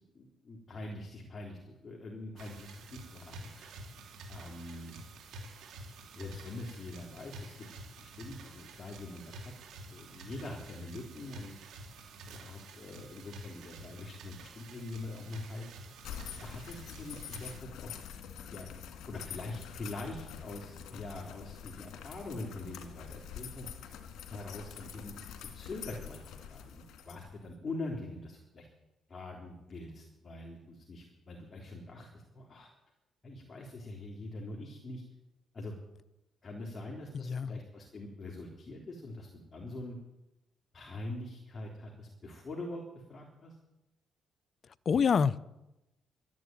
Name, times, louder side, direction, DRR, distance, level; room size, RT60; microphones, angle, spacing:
voice 1, 0.2-3.8 4.3-5.0 6.2-7.7 8.0-9.5 9.9-11.5 12.3-15.7 16.4-17.5 17.8-18.0 18.5-18.7 19.1-23.7 24.3-25.2 25.5-28.7 29.1-32.7 33.2-35.0 35.5-35.7 36.4-40.0 40.7-42.8 43.1-43.6, left 2 dB, 30° left, 3.6 m, -44 dB
sound 1, 2.4-17.6, right 2 dB, 80° right, 3.8 m, -49 dB
sound 2, 16.0-27.5, left 8 dB, 85° left, 2.1 m, -46 dB
voice 2, 37.1-37.6 44.9-45.4, left 6 dB, 50° left, 0.6 m, -27 dB
13.0 x 11.0 x 9.2 m
cardioid pair, 90°, 0 cm